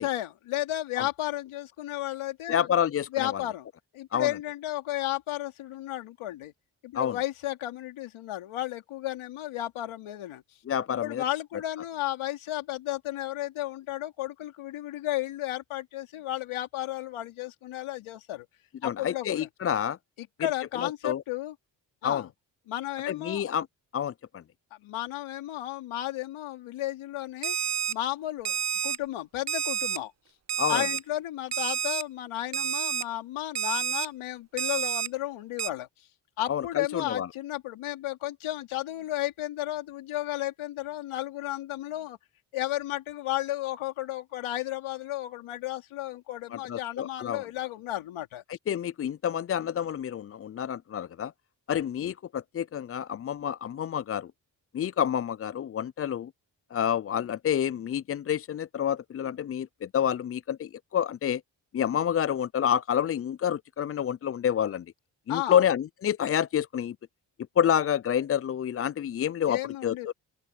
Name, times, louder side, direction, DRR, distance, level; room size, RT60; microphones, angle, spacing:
voice 1, 0.0-2.7 3.1-3.7 3.9-6.5 6.8-10.4 10.9-18.5 18.8-19.5 20.2-21.5 22.0-22.3 22.7-23.5 24.8-27.6 27.9-30.1 30.7-35.9 36.4-42.2 42.5-48.4 65.3-65.6 69.5-70.1, left 14 dB, 85° left, 2.7 m, -33 dB
voice 2, 2.5-3.4 4.1-4.3 6.9-7.1 10.7-11.2 18.8-20.0 20.8-21.2 22.0-22.3 23.1-23.7 23.9-24.4 30.6-30.8 36.5-37.3 46.5-47.5 48.5-51.3 51.7-54.3 54.7-56.3 56.7-61.4 61.7-64.8 65.3-67.0 67.6-70.1, left 9 dB, 30° left, 0.4 m, -28 dB
Alarm, 27.4-27.9 28.5-29.0 29.5-30.0 30.5-31.0 31.5-32.0 32.5-33.0 33.6-34.1 34.6-35.1 35.6-35.7, right 9 dB, 35° right, 0.6 m, -29 dB
open air
supercardioid pair, 45°, 48 cm